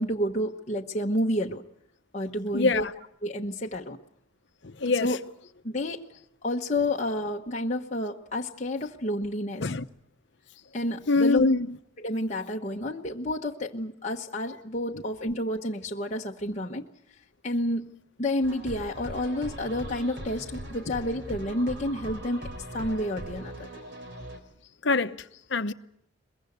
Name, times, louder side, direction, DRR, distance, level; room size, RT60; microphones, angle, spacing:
voice 1, 0.0-1.6 2.1-2.9 3.2-4.0 5.0-5.2 5.6-6.0 6.4-9.7 10.7-11.5 12.0-16.9 17.4-23.7, left 1 dB, 35° left, 1.1 m, -30 dB
voice 2, 2.5-2.9 4.6-5.1 9.6-9.8 11.1-11.7 24.8-25.2 25.5-25.7, left 3 dB, 65° left, 0.9 m, -24 dB
sound 1, 18.4-24.4, right 1 dB, 60° right, 4.1 m, -40 dB
22.5 x 22.0 x 8.1 m
head